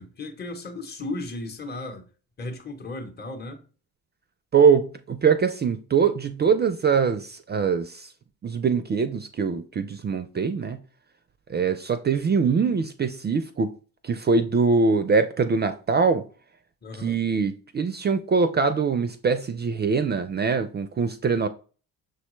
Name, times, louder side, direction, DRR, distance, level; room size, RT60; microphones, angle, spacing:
voice 1, 0.0-2.0 2.4-3.6 16.8-17.2, left 2 dB, 25° left, 0.8 m, -35 dB
voice 2, 4.5-8.1 8.4-10.8 11.5-13.7 14.0-16.3 16.9-21.5, right 5 dB, 30° right, 0.3 m, -23 dB
6.3 x 2.2 x 3.0 m
cardioid pair, 75°, 36 cm